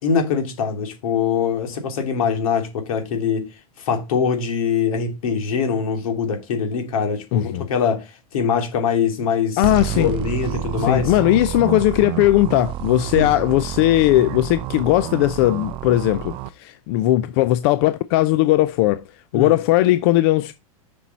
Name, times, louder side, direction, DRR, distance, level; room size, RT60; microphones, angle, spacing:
voice 1, 0.0-3.4 3.8-8.0 8.3-9.6 9.9-11.1 13.1-13.3 19.3-19.5, left 6 dB, 75° left, 3.0 m, -23 dB
voice 2, 7.3-7.7 9.6-10.1 10.8-19.0 19.3-20.5, left 15 dB, 45° left, 0.6 m, -18 dB
sound 1, 9.6-16.5, right 15 dB, 30° right, 0.5 m, -29 dB
7.3 x 6.2 x 4.1 m
supercardioid pair, 150°, 18 cm